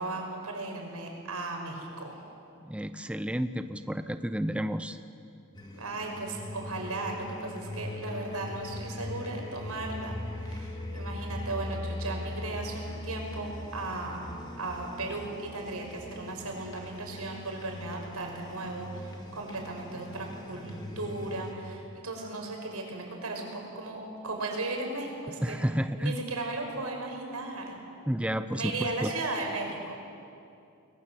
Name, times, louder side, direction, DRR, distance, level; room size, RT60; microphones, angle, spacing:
voice 1, 0.0-2.2 5.7-25.6 26.0-27.8 28.5-29.9, right 2 dB, 90° right, 2 dB, 5.8 m, -36 dB
voice 2, 2.6-5.0 25.4-26.2 28.1-29.1, equal, 5° right, 10 dB, 0.6 m, -31 dB
sound 1, 5.5-21.5, left 1 dB, 20° left, 2.6 m, -40 dB
30.0 x 21.5 x 7.8 m, 2.6 s
head